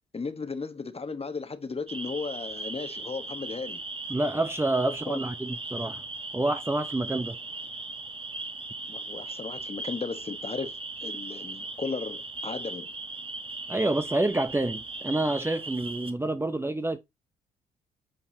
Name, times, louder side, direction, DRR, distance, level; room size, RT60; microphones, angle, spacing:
voice 1, 0.1-3.8 5.1-5.2 8.9-12.9, left 4 dB, 30° left, 1.2 m, -35 dB
sound 1, 1.9-16.1, right 3 dB, 25° right, 1.4 m, -38 dB
voice 2, 4.1-6.0 6.3-7.4 13.7-17.0, right 2 dB, 10° right, 0.7 m, -28 dB
8.9 x 4.5 x 2.8 m
hypercardioid pair, 45°, 20 cm